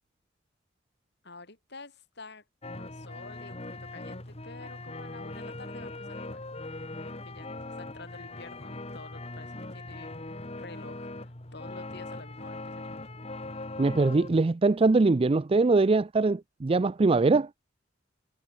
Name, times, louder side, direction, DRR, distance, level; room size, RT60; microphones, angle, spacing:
voice 1, 1.2-2.4 2.7-6.4 7.1-13.1, left 3 dB, 60° left, 7.3 m, -49 dB
sound 1, 2.6-14.4, left 2 dB, 35° left, 2.3 m, -40 dB
voice 2, 13.8-17.5, right 3 dB, 30° right, 0.4 m, -22 dB
head